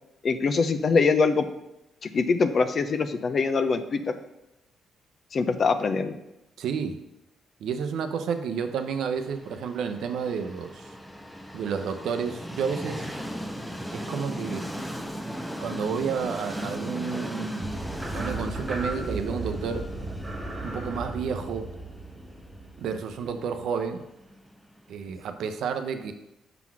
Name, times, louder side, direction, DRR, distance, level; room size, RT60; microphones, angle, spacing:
voice 1, 0.2-1.5 2.0-4.0 5.3-6.1, left 4 dB, 45° left, 9 dB, 0.6 m, -23 dB
voice 2, 6.6-7.0 7.6-10.9 11.5-13.0 13.9-14.7 15.6-17.8 18.1-20.0 20.6-21.7 22.8-24.0 24.9-26.1, right 6 dB, 75° right, 8 dB, 0.6 m, -31 dB
Train, 9.0-24.8, equal, ahead, 0.7 m, -38 dB
sound 1, 17.6-23.6, right 2 dB, 20° right, 1.7 m, -35 dB
5.9 x 3.9 x 6.1 m, 0.89 s
cardioid pair, 90°, 0 cm